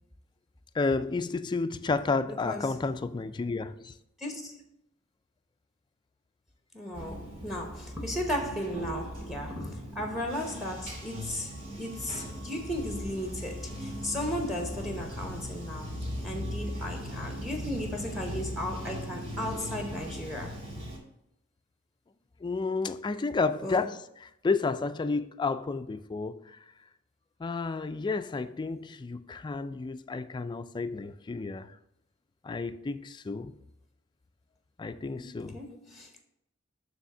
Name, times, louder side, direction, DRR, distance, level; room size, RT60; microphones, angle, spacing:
voice 1, 0.7-3.9 22.4-23.9 24.4-26.6 27.4-31.7 32.4-33.5 34.8-35.6, left 4 dB, 20° left, 0.3 m, -31 dB
voice 2, 2.3-2.8 4.2-4.6 6.7-20.6 23.6-23.9 35.2-36.2, left 1 dB, ahead, 0.8 m, -36 dB
Bathtub (filling or washing), 6.9-21.0, equal, 35° right, 2.1 m, -39 dB
7.0 x 3.5 x 6.0 m
head